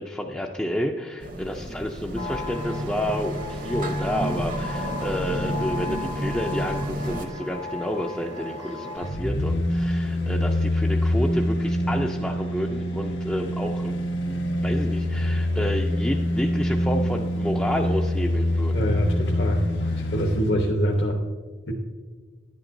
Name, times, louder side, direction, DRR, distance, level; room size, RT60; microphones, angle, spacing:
voice 1, 0.0-18.8, equal, 5° left, -1 dB, 0.4 m, -30 dB
sound 1, 1.2-7.3, right 1 dB, 45° right, 0.8 m, -31 dB
sound 2, 2.2-9.1, left 2 dB, 75° right, 1.0 m, -36 dB
sound 3, 9.0-20.6 20.9-21.0, left 1 dB, 90° left, 1.2 m, -25 dB
voice 2, 18.7-19.6 19.9-21.2 21.7-21.8, equal, 65° left, 1 dB, 1.0 m, -24 dB
10.5 x 8.8 x 2.6 m, 1.5 s
head